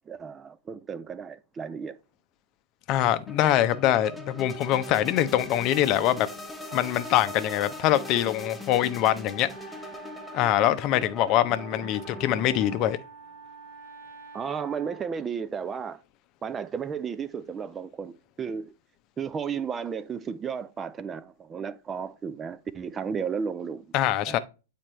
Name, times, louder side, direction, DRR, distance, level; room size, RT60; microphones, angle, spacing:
voice 1, 0.1-2.0 14.3-16.0 16.4-18.7 19.2-23.9 24.3-24.4, right 6 dB, 20° right, 0.4 m, -33 dB
voice 2, 2.9-6.3 6.7-9.5 10.3-13.0 23.9-24.4, left 12 dB, 40° left, 0.6 m, -24 dB
sound 1, 3.3-12.9, left 1 dB, 5° left, 1.0 m, -41 dB
Wind instrument woodwind instrument, 6.1-15.2, right 4 dB, 50° right, 0.9 m, -48 dB
8.8 x 4.3 x 3.1 m
figure-of-eight pair, 100°, 0 cm